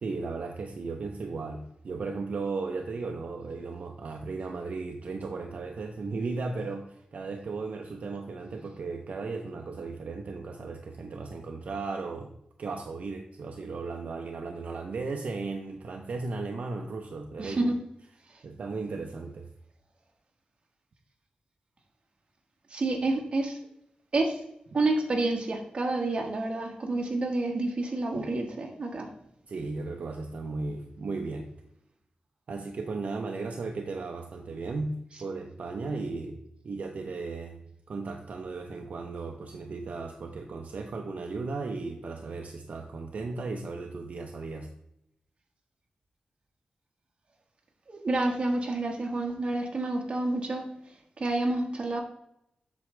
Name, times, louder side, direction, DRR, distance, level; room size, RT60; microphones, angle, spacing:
voice 1, 0.0-12.3 12.6-17.7 18.4-19.5 28.1-28.3 29.5-31.5 32.5-37.6 37.9-44.7, right 3 dB, 60° right, 3 dB, 0.6 m, -36 dB
voice 2, 17.4-17.8 22.7-23.6 24.1-24.4 24.7-29.1 47.9-50.6 51.2-52.0, right 2 dB, 40° right, 1 dB, 1.3 m, -29 dB
8.1 x 6.1 x 3.2 m, 0.77 s
wide cardioid pair, 175°, 3 cm